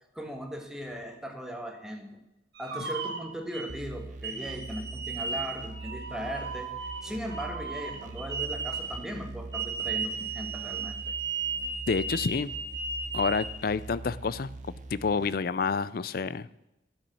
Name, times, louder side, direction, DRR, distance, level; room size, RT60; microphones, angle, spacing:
voice 1, 0.1-2.2 2.6-11.1, equal, 5° right, 2 dB, 1.7 m, -38 dB
sound 1, 2.5-3.7 4.2-9.0 9.5-13.5, right 5 dB, 65° right, 2.5 m, -35 dB
sound 2, 3.7-15.3, right 2 dB, 45° right, 1.1 m, -43 dB
voice 2, 11.9-12.5 13.1-14.5 14.9-16.5, left 5 dB, 55° left, 17 dB, 0.4 m, -28 dB
12.5 x 7.1 x 7.7 m, 0.89 s
head